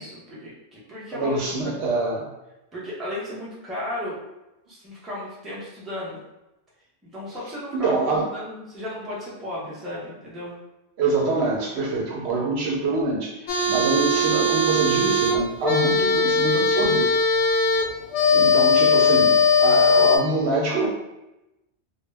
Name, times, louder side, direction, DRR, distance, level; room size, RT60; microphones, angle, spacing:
voice 1, 0.0-1.8 2.7-4.2 4.7-6.2 7.0-8.0 8.3-10.6, left 1 dB, ahead, -7 dB, 0.5 m, -34 dB
voice 2, 1.1-2.3 7.7-8.3 11.0-17.1 18.3-20.9, right 3 dB, 70° right, -2 dB, 0.9 m, -25 dB
sound 1, 13.5-20.2, left 3 dB, 85° left, 0.9 m, -19 dB
2.2 x 2.1 x 3.2 m, 0.94 s
omnidirectional pair, 1.1 m